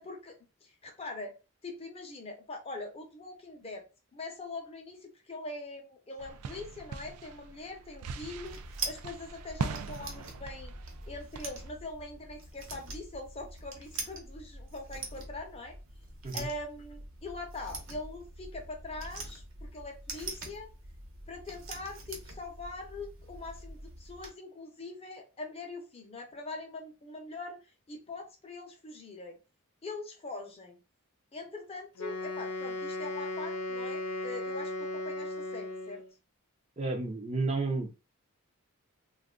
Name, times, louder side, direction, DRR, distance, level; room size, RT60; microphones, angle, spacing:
voice 1, 0.0-1.3 1.6-3.8 4.1-10.7 11.1-15.8 16.3-20.7 21.3-29.4 29.8-30.8 31.3-36.0, left 2 dB, 25° left, 3 dB, 0.6 m, -43 dB
sound 1, 6.2-11.7, right 5 dB, 90° right, 0.4 m, -41 dB
sound 2, 8.1-24.3, right 3 dB, 60° right, 0.9 m, -44 dB
Wind instrument woodwind instrument, 32.0-36.1, left 2 dB, 85° left, 0.6 m, -36 dB
voice 2, 36.8-38.0, right 3 dB, 30° right, 3 dB, 0.5 m, -32 dB
2.5 x 2.3 x 3.6 m, 0.30 s
head